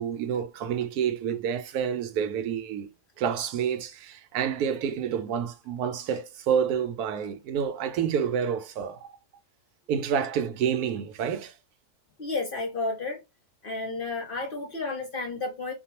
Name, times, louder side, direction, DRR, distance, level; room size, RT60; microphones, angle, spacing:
voice 1, 0.0-2.9 3.2-9.1 9.9-11.5, right 8 dB, 80° right, 1.1 m, -28 dB
voice 2, 12.2-13.2 13.6-15.7, left 3 dB, 45° left, 0.7 m, -32 dB
2.5 x 2.3 x 2.8 m
omnidirectional pair, 1.6 m